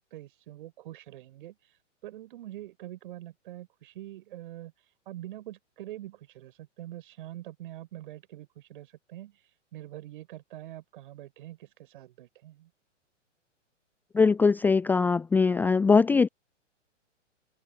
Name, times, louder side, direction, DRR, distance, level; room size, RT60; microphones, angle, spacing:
voice 1, 0.0-1.6 2.0-4.7 5.1-9.4 9.7-12.7, right 14 dB, 45° right, 6.4 m, -44 dB
voice 2, 14.1-16.3, left 4 dB, 5° left, 0.8 m, -21 dB
figure-of-eight pair, 115°, 37 cm